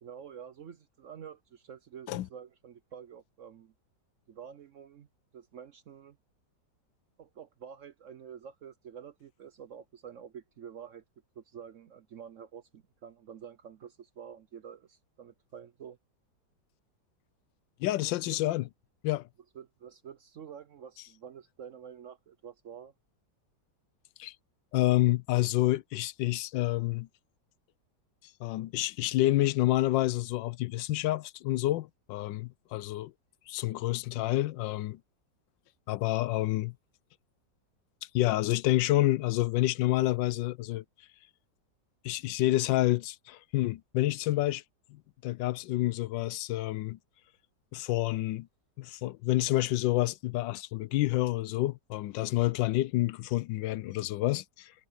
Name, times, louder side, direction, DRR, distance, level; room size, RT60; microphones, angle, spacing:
voice 1, 0.0-3.7 4.3-5.1 5.3-6.2 7.2-11.0 11.4-16.0 18.3-18.4 19.5-22.9, right 8 dB, 60° right, 0.8 m, -48 dB
voice 2, 17.8-18.7 19.0-19.3 24.2-24.3 24.7-27.1 28.4-33.1 33.5-35.0 35.9-36.7 38.1-40.8 42.0-44.6 44.9-47.0 47.7-48.5 48.8-54.7, left 16 dB, 90° left, 1.3 m, -28 dB
omnidirectional pair, 2.0 m